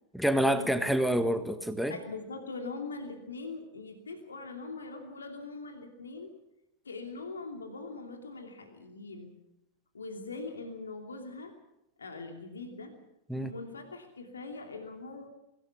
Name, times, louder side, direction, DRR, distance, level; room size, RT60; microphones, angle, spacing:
voice 1, 0.1-2.0 13.3-13.5, equal, ahead, 10 dB, 1.5 m, -27 dB
voice 2, 1.9-6.3 6.8-9.3 9.9-11.5 12.0-12.9 13.3-15.3, left 3 dB, 75° left, 5 dB, 2.7 m, -42 dB
23.5 x 17.5 x 7.0 m, 0.91 s
figure-of-eight pair, 90°, 0 cm